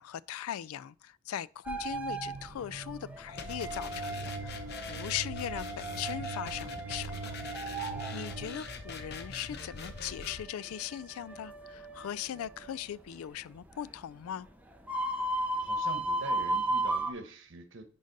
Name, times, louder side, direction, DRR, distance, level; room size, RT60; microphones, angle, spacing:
voice 1, 0.0-7.8 8.1-14.5, left 10 dB, 90° left, 0.3 m, -39 dB
sound 1, 1.6-17.1, right 1 dB, 5° right, 0.7 m, -37 dB
sound 2, 1.9-8.6, right 5 dB, 90° right, 0.8 m, -43 dB
sound 3, 3.4-10.4, left 4 dB, 50° left, 0.8 m, -44 dB
voice 2, 7.9-8.3 15.6-17.8, right 2 dB, 60° right, 1.2 m, -44 dB
10.5 x 3.9 x 4.0 m
head